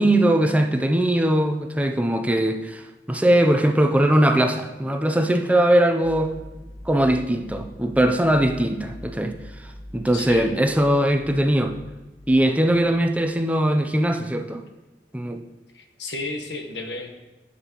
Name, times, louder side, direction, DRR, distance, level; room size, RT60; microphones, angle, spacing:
voice 1, 0.0-6.3 6.9-9.3 9.9-11.7 12.3-14.6 15.1-15.4, right 1 dB, 10° right, 4 dB, 0.5 m, -20 dB
sound 1, 6.0-13.1, equal, 55° left, 1.4 m, -43 dB
voice 2, 10.1-10.6 15.7-17.2, left 2 dB, 85° left, 4 dB, 1.2 m, -32 dB
10.5 x 7.3 x 3.0 m, 1.1 s
head